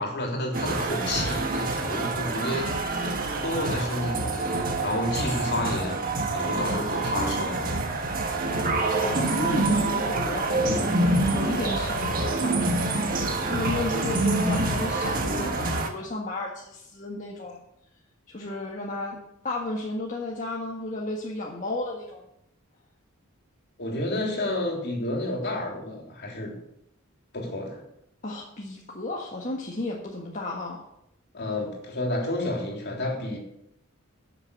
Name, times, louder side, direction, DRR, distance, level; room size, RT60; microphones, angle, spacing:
voice 1, 0.0-2.7 3.4-4.6 4.8-6.0 6.3-7.6 23.8-26.6 27.3-27.8 31.3-33.4, left 1 dB, 50° left, 0 dB, 3.3 m, -30 dB
sound 1, 0.5-15.9, right 2 dB, 40° right, 1.5 m, -26 dB
voice 2, 8.9-11.0 11.3-12.8 13.5-17.6 18.3-19.2 19.4-22.2 28.2-30.8, left 2 dB, 35° left, -2 dB, 1.6 m, -33 dB
12.5 x 6.9 x 6.9 m, 0.77 s
head